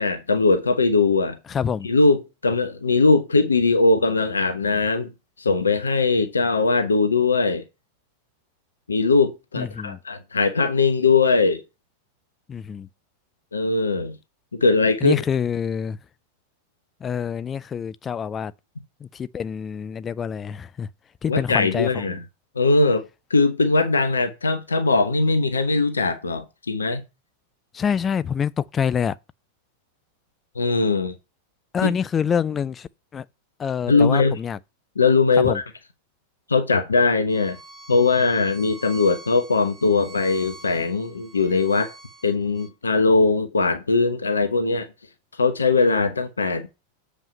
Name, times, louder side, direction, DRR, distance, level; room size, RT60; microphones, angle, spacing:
voice 1, 0.0-1.4 1.8-5.1 5.4-7.6 8.9-11.6 13.5-14.2 14.5-15.2 21.3-22.2 22.6-27.0 30.6-31.1 31.8-31.9 33.9-34.4 35.0-35.6 36.5-37.6 37.9-41.9 42.2-44.9 45.4-46.7, left 3 dB, 75° left, 1.0 m, -20 dB
voice 2, 1.5-1.9 9.6-10.0 12.5-12.9 15.0-16.0 17.0-18.5 19.0-20.9 21.2-22.2 27.7-29.1 31.7-33.2 33.6-34.6 35.4-35.6, left 7 dB, 20° left, 0.4 m, -26 dB
Bowed string instrument, 37.3-42.7, right 2 dB, 15° right, 4.6 m, -45 dB
7.5 x 5.1 x 5.3 m
figure-of-eight pair, 90°, 0 cm